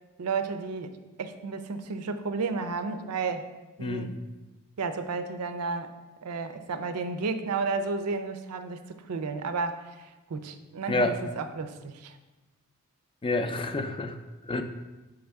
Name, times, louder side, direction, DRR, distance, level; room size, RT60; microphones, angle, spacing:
voice 1, 0.2-0.9 1.2-3.5 3.8-4.1 4.8-5.9 6.2-8.8 9.1-12.2, right 4 dB, 85° right, 9 dB, 0.5 m, -32 dB
voice 2, 3.8-4.1 10.9-11.2 13.2-14.2 14.4-14.6, left 2 dB, 25° left, 8 dB, 0.4 m, -28 dB
6.4 x 4.8 x 3.5 m, 1.1 s
head